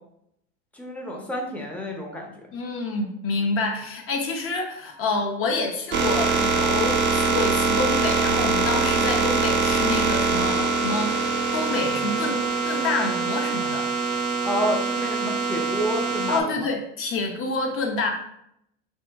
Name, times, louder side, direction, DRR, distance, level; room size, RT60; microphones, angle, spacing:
voice 1, 0.7-2.3 14.4-16.7, equal, 5° left, 0 dB, 0.7 m, -29 dB
voice 2, 2.5-13.9 16.3-18.1, left 3 dB, 40° left, 3 dB, 0.9 m, -28 dB
sound 1, 5.9-16.4, right 4 dB, 35° right, 0.6 m, -23 dB
3.6 x 2.9 x 3.4 m, 0.74 s
supercardioid pair, 125°, 34 cm